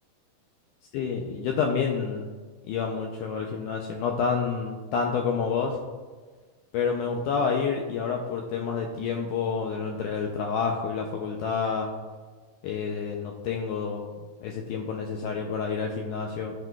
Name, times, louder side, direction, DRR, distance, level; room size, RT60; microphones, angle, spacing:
voice 1, 0.9-2.3 2.7-5.8 6.7-11.9 12.6-14.0 14.4-16.5, left 5 dB, 85° left, 2 dB, 1.8 m, -28 dB
9.5 x 6.0 x 2.2 m, 1.4 s
omnidirectional pair, 4.2 m